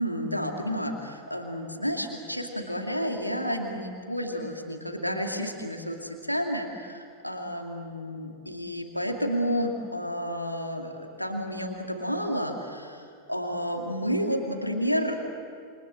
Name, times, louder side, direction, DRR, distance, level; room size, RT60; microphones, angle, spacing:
voice 1, 0.0-15.2, equal, 90° left, 3 dB, 2.6 m, -31 dB
28.0 x 25.5 x 7.7 m, 2.2 s
figure-of-eight pair, 90°, 0 cm